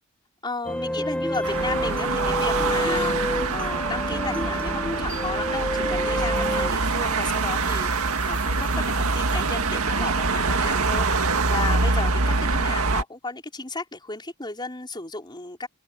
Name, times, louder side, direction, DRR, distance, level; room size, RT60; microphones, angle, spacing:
voice 1, 0.4-15.7, left 3 dB, 20° left, 4.6 m, -34 dB
sound 1, 0.6-9.5, left 1 dB, 5° left, 1.3 m, -30 dB
sound 2, 1.4-13.0, right 3 dB, 90° right, 1.9 m, -24 dB
head